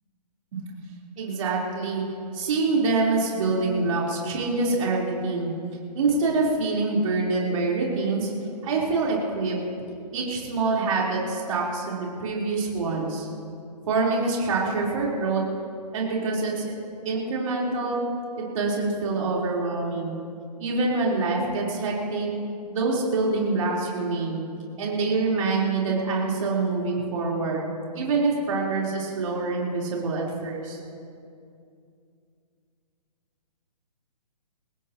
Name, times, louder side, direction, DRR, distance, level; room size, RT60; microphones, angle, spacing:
voice 1, 1.2-2.0 2.3-5.5 5.9-8.3 8.6-9.6 10.1-13.3 13.9-15.4 15.9-16.7 17.0-18.0 18.4-20.2 20.6-22.3 22.7-24.4 24.8-30.8, right 3 dB, 50° right, -3 dB, 4.5 m, -25 dB
22.5 x 18.5 x 3.2 m, 2.4 s
hypercardioid pair, 135°, 21 cm